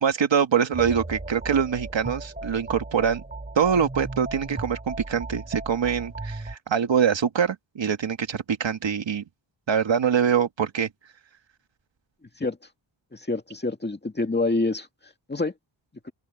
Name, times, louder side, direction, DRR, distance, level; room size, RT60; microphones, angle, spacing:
voice 1, 0.0-3.2 3.5-9.2 9.7-10.9, right 7 dB, 65° right, 1.8 m, -24 dB
sound 1, 0.7-6.6, right 2 dB, 20° right, 3.4 m, -36 dB
voice 2, 13.1-14.9 15.3-15.5 16.0-16.1, left 2 dB, 20° left, 2.2 m, -26 dB
open air
wide cardioid pair, 165°, 48 cm